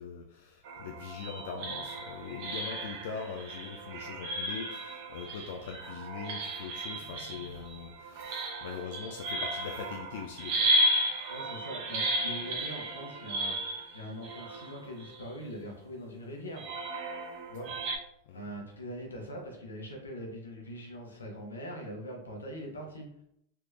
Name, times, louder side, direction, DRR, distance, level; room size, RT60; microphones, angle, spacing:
voice 1, 0.0-10.9 17.7-17.8 18.3-18.5, left 6 dB, 65° left, 3 dB, 0.4 m, -42 dB
sound 1, 0.6-15.6 16.6-18.0, right 1 dB, 55° right, 0.7 m, -34 dB
voice 2, 11.3-16.7 17.5-17.7 18.3-23.1, equal, 85° left, 1 dB, 1.0 m, -42 dB
3.5 x 3.0 x 2.4 m, 0.74 s
hypercardioid pair, 90°, 0 cm